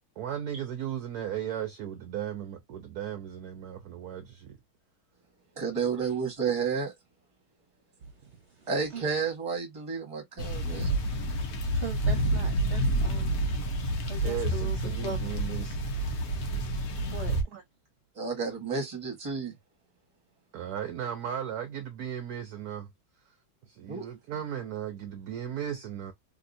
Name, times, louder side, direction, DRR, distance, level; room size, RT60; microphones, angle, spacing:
voice 1, 0.2-4.6 9.0-9.1 14.1-15.9 17.5-17.6 20.5-22.8 23.7-26.1, right 10 dB, 70° right, 0.9 m, -36 dB
voice 2, 5.6-6.9 8.7-10.9 18.2-19.5 23.9-24.1, right 5 dB, 20° right, 1.1 m, -31 dB
voice 3, 8.3-9.0 11.7-13.5 14.1-15.3 17.1-17.4, right 2 dB, 45° right, 1.0 m, -40 dB
sound 1, 10.4-17.4, right 1 dB, 60° left, 1.1 m, -29 dB
3.4 x 2.9 x 2.5 m
omnidirectional pair, 2.2 m